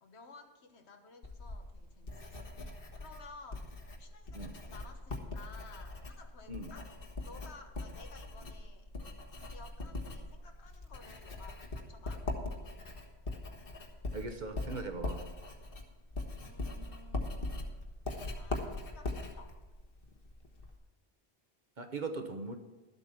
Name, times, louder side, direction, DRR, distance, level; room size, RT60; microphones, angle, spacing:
voice 1, 0.0-2.2 3.0-6.9 7.2-8.9 9.4-12.3 16.4-17.4 18.3-19.6, left 3 dB, 90° left, 5 dB, 1.4 m, -55 dB
Writing, 1.2-20.8, left 2 dB, 60° left, 1.5 m, -41 dB
voice 2, 14.1-15.2 21.8-22.6, right 3 dB, 45° right, 6 dB, 1.1 m, -39 dB
12.5 x 8.1 x 5.8 m, 1.2 s
omnidirectional pair, 1.1 m